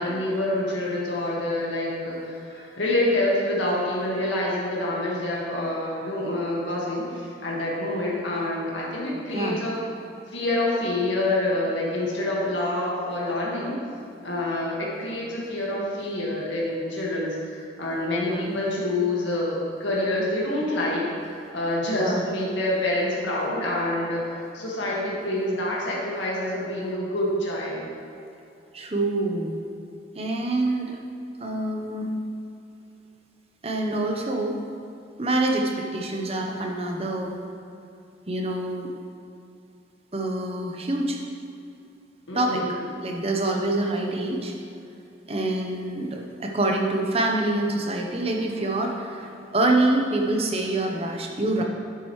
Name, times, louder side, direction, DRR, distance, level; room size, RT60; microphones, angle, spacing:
voice 1, 0.0-9.8 10.3-13.7 14.2-27.8 42.3-42.8, left 1 dB, 80° left, -5 dB, 1.8 m, -27 dB
voice 2, 21.9-22.2 28.7-29.6 30.1-31.0 31.4-32.1 33.6-34.6 35.2-37.3 38.3-38.9 40.1-41.2 42.3-42.6 43.0-44.5 45.3-51.6, right 2 dB, 30° right, 1 dB, 0.8 m, -26 dB
10.0 x 7.6 x 3.2 m, 2.6 s
head